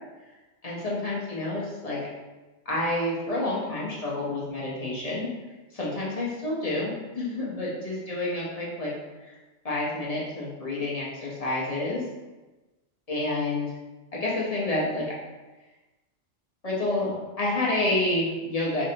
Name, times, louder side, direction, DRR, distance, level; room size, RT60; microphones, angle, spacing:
voice 1, 0.6-2.0 2.6-5.3 5.7-8.9 9.2-9.4 9.6-12.0 13.1-13.7 14.1-15.1 16.6-18.8, left 2 dB, 30° left, -6 dB, 1.1 m, -29 dB
4.8 x 3.2 x 2.8 m, 1.1 s
omnidirectional pair, 1.2 m